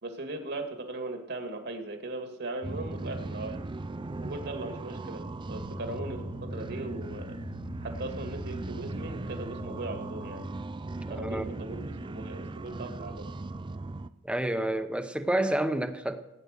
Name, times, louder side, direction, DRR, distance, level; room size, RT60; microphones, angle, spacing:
voice 1, 0.0-3.6 4.2-5.2 5.5-7.4 7.8-10.4 11.1-13.3, right 2 dB, 55° right, 4 dB, 2.3 m, -38 dB
sound 1, 2.6-14.1, right 2 dB, 25° right, 0.4 m, -38 dB
sound 2, 5.5-10.5, left 5 dB, 65° left, 1.0 m, -46 dB
voice 2, 11.1-11.4 14.2-16.2, right 1 dB, 5° right, 8 dB, 0.9 m, -29 dB
16.5 x 9.6 x 6.6 m, 0.96 s
head